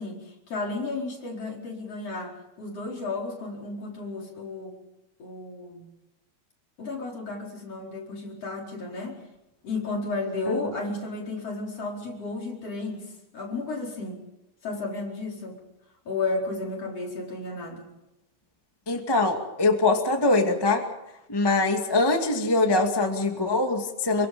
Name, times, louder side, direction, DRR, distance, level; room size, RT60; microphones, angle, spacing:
voice 1, 0.0-4.8 5.2-5.9 6.8-9.2 9.6-14.2 14.6-15.6 16.1-17.9, left 3 dB, 35° left, -1 dB, 5.4 m, -33 dB
voice 2, 18.9-20.8 21.3-24.3, left 2 dB, 15° left, 3 dB, 0.9 m, -23 dB
28.0 x 24.0 x 5.3 m, 0.93 s
omnidirectional pair, 4.8 m